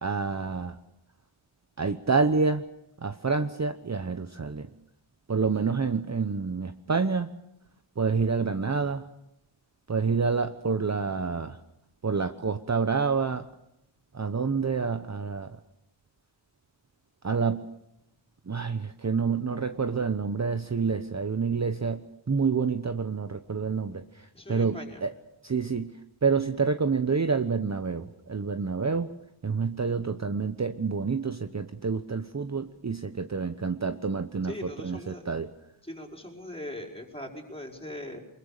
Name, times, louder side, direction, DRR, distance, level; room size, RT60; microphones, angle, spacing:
voice 1, 0.0-0.8 1.8-2.6 3.0-4.7 5.3-7.3 8.0-9.0 9.9-11.6 12.0-13.5 14.1-15.6 17.2-17.7 18.5-25.1 25.4-29.1 29.4-35.5, right 5 dB, 35° right, 9 dB, 1.0 m, -28 dB
voice 2, 24.3-25.0 34.4-35.3 35.8-38.2, left 1 dB, 10° left, 1 dB, 5.0 m, -40 dB
24.5 x 21.5 x 6.8 m, 0.83 s
wide cardioid pair, 95°, 49 cm